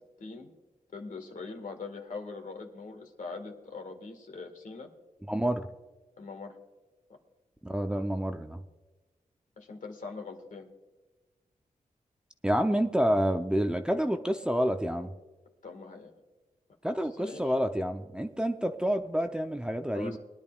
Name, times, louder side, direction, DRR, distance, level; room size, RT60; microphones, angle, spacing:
voice 1, 0.2-0.5 0.9-4.9 6.2-6.6 9.6-10.7 15.6-16.1 17.2-17.5 19.9-20.2, left 4 dB, 60° left, 4 dB, 1.8 m, -42 dB
voice 2, 5.3-5.7 7.6-8.6 12.4-15.1 16.8-20.2, equal, 5° right, 5 dB, 0.7 m, -28 dB
22.0 x 10.5 x 2.4 m, 1.2 s
cardioid pair, 70°, 15 cm